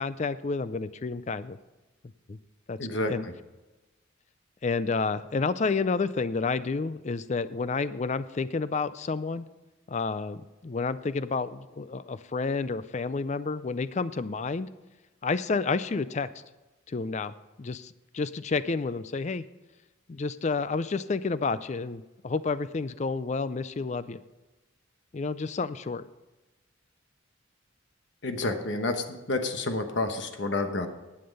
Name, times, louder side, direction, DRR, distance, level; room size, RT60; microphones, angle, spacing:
voice 1, 0.0-1.6 2.3-2.4 2.7-2.8 3.1-3.3 4.6-9.4 9.9-14.7 15.2-16.3 16.9-19.4 20.1-24.2 25.1-26.0, left 4 dB, 35° left, 15 dB, 0.4 m, -30 dB
voice 2, 2.8-3.3 28.2-30.9, left 2 dB, 60° left, 7 dB, 1.1 m, -29 dB
11.0 x 8.7 x 5.4 m, 1.1 s
head